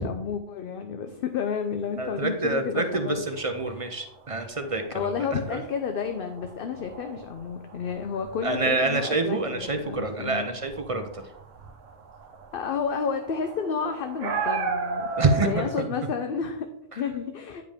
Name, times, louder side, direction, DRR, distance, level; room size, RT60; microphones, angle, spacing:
voice 1, 0.0-3.2 3.7-3.9 4.9-10.6 12.5-15.1 15.4-17.7, left 6 dB, 60° left, 7 dB, 0.7 m, -31 dB
voice 2, 2.0-5.1 5.5-5.6 8.4-11.2 15.2-15.6, right 3 dB, 40° right, 7 dB, 0.5 m, -27 dB
sound 1, 3.3-15.8, right 5 dB, 90° right, 1.2 m, -36 dB
9.2 x 5.1 x 3.5 m, 0.77 s
omnidirectional pair, 1.3 m